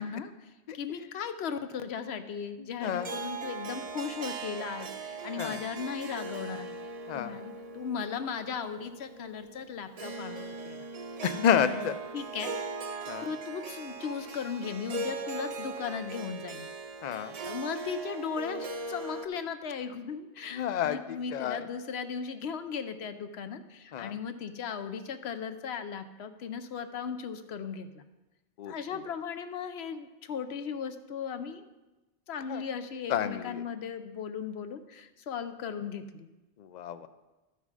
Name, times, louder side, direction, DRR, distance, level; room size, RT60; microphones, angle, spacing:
voice 1, 0.0-6.7 7.1-10.8 11.3-12.5 13.2-16.7 17.4-28.0 28.6-31.6 32.3-36.3, left 6 dB, 70° left, 9 dB, 0.9 m, -37 dB
voice 2, 2.6-3.1 5.4-5.6 7.1-7.3 11.2-11.9 13.1-13.3 17.0-17.4 20.5-21.6 23.9-24.1 28.6-28.7 32.5-32.6 33.1-33.6 36.6-37.1, left 8 dB, 55° left, 12 dB, 0.5 m, -30 dB
Harp, 2.8-19.3, right 3 dB, 45° right, 0.5 m, -39 dB
13.0 x 5.8 x 4.8 m, 1.1 s
omnidirectional pair, 1.1 m